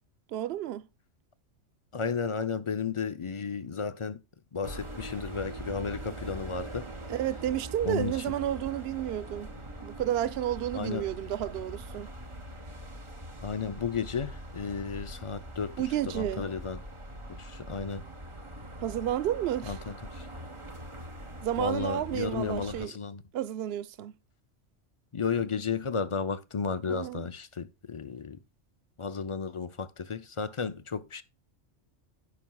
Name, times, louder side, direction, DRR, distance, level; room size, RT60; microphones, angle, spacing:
voice 1, 0.3-0.9 7.1-9.5 9.8-12.1 15.8-16.4 18.8-19.8 21.4-22.9 23.3-24.1 26.9-27.2, right 12 dB, 60° right, 0.8 m, -31 dB
voice 2, 1.9-4.2 4.5-6.9 7.8-8.1 10.7-11.1 13.4-15.7 16.1-16.8 17.4-18.0 19.6-20.3 21.6-23.2 25.1-28.4 29.0-31.2, left 5 dB, 35° left, 0.5 m, -33 dB
sound 1, 4.6-22.9, right 1 dB, 25° right, 1.2 m, -42 dB
14.5 x 6.0 x 2.3 m
omnidirectional pair, 1.3 m